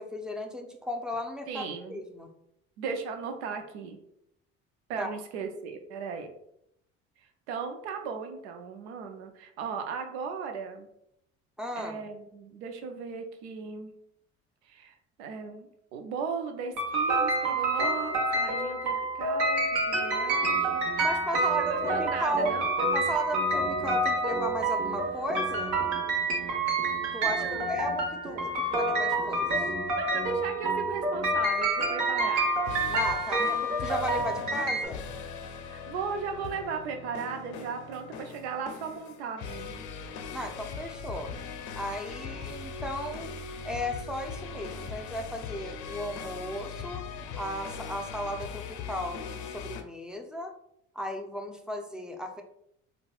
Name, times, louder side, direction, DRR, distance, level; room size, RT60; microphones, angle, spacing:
voice 1, 0.0-1.6 1.9-2.3 5.0-5.1 11.6-12.0 21.0-22.5 22.9-25.8 27.1-29.5 32.9-35.0 40.3-41.3 41.8-43.3 43.6-47.0 47.4-50.5 51.0-52.4, equal, ahead, 3 dB, 0.5 m, -35 dB
voice 2, 1.5-2.0 2.8-4.0 4.9-6.3 7.5-10.9 11.8-13.9 14.7-20.9 21.3-22.9 27.4-27.7 30.0-32.5 35.7-39.9, right 5 dB, 90° right, 5 dB, 0.5 m, -37 dB
sound 1, 16.8-34.9, right 2 dB, 60° right, 1.0 m, -28 dB
sound 2, 20.4-31.4, right 2 dB, 40° right, 0.8 m, -42 dB
sound 3, 32.4-49.8, left 5 dB, 65° left, 0.5 m, -40 dB
3.9 x 2.2 x 2.3 m, 0.75 s
hypercardioid pair, 65°, 32 cm